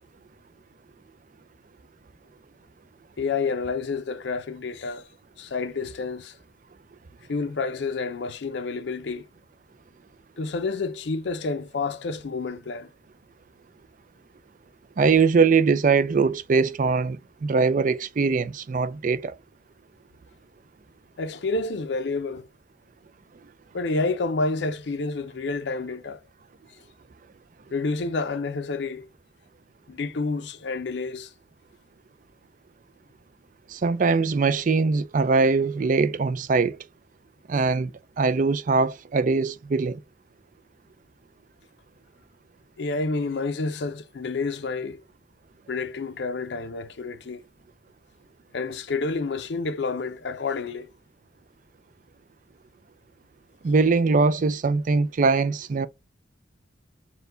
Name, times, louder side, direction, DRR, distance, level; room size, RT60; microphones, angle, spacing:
voice 1, 3.2-5.1 5.4-6.3 7.3-9.3 10.4-12.9 21.2-22.5 23.7-26.2 27.7-29.1 29.9-31.3 42.8-45.0 45.7-47.4 48.5-50.9, left 3 dB, 65° left, 0.5 m, -29 dB
voice 2, 15.0-19.4 33.7-36.8 37.5-37.9 38.2-40.0 53.6-55.9, right 4 dB, 45° right, 0.4 m, -22 dB
4.4 x 2.3 x 3.8 m
head